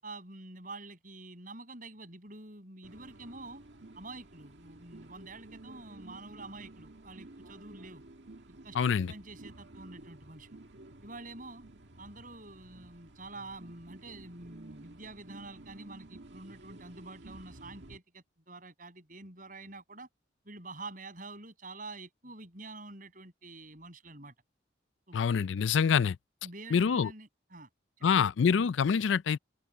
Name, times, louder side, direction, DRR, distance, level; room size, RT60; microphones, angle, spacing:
voice 1, 0.0-3.6 4.0-8.0 8.6-10.6 11.0-11.6 12.0-20.1 20.4-24.3 25.1-25.2 26.4-27.7 28.0-28.3, right 2 dB, 45° right, 7.4 m, -47 dB
sound 1, 2.8-18.0, right 2 dB, 65° right, 2.1 m, -52 dB
voice 2, 8.8-9.1 25.1-26.2 26.7-27.1 28.0-29.4, left 6 dB, 75° left, 0.4 m, -26 dB
open air
head